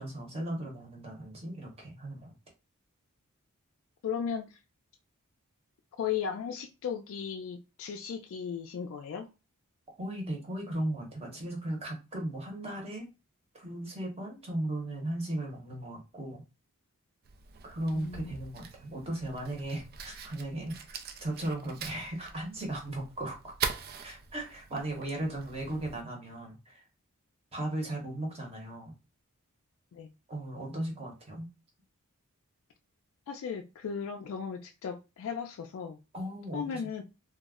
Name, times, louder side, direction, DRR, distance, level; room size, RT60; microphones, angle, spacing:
voice 1, 0.0-2.3 10.0-13.1 13.5-16.4 17.6-20.8 21.2-23.5 24.0-26.8 27.5-28.9 30.3-31.5 36.1-37.0, right 1 dB, 25° right, 0.9 m, -36 dB
voice 2, 4.0-4.6 6.0-9.3 17.9-18.3 29.9-30.1 33.3-36.0 36.5-37.0, left 7 dB, 60° left, 0.3 m, -36 dB
Fire, 17.2-26.0, right 6 dB, 45° right, 0.3 m, -42 dB
2.3 x 2.0 x 3.5 m
head